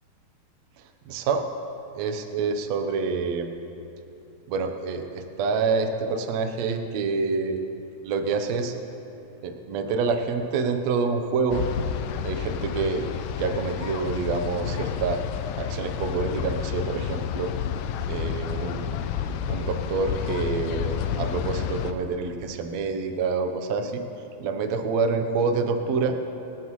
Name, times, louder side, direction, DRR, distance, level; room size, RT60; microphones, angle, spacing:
voice 1, 0.8-1.5 1.9-3.5 4.5-7.6 8.0-8.7 9.4-11.6 12.2-15.2 15.6-17.5 18.1-19.1 19.5-24.0 24.4-26.2, right 4 dB, 75° right, 5 dB, 1.5 m, -27 dB
sound 1, 11.5-21.9, left 8 dB, 80° left, 2.2 m, -30 dB
28.5 x 9.6 x 3.1 m, 2.8 s
omnidirectional pair, 4.3 m